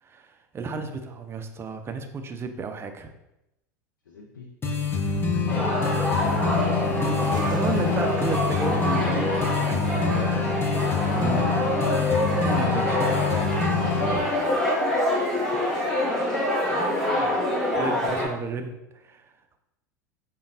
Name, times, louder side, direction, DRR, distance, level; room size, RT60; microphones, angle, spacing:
voice 1, 0.0-3.1 5.4-5.7 7.4-13.1 16.7-17.3 17.7-19.3, right 4 dB, 25° right, 7 dB, 0.4 m, -34 dB
voice 2, 4.1-4.5 5.3-6.7 7.2-7.4 7.7-8.1 13.5-15.1, left 3 dB, 85° left, -1 dB, 0.4 m, -41 dB
sound 1, 4.6-14.2, left 4 dB, 20° left, 0.6 m, -26 dB
sound 2, 5.5-18.3, left 1 dB, 5° left, 1.1 m, -26 dB
Toilet flush, 6.6-9.7, right 2 dB, 85° right, 0.6 m, -38 dB
5.1 x 2.2 x 2.5 m, 0.89 s
hypercardioid pair, 85°, 10 cm